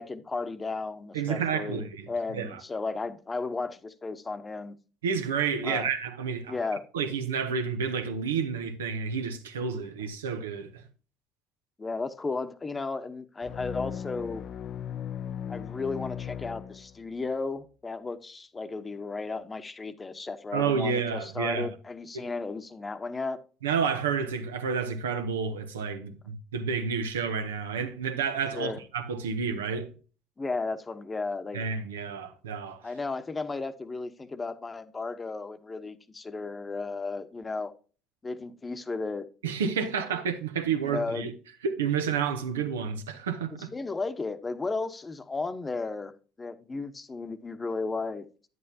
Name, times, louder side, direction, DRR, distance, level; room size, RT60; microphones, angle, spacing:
voice 1, 0.0-4.7 5.6-5.9 6.5-6.8 11.8-14.4 15.5-23.4 28.5-28.8 30.4-31.7 32.8-37.7 38.2-39.2 40.0-40.1 40.8-41.3 43.7-46.1 46.4-48.3, left 3 dB, 25° left, 0.8 m, -34 dB
voice 2, 1.1-2.6 5.0-6.5 6.9-10.8 20.5-21.7 22.1-22.3 23.6-29.9 31.5-32.8 39.4-41.3 41.6-43.7, right 6 dB, 90° right, 0.8 m, -30 dB
sound 1, 13.4-17.3, left 9 dB, 55° left, 0.4 m, -37 dB
9.2 x 7.9 x 2.7 m
hypercardioid pair, 65°, 0 cm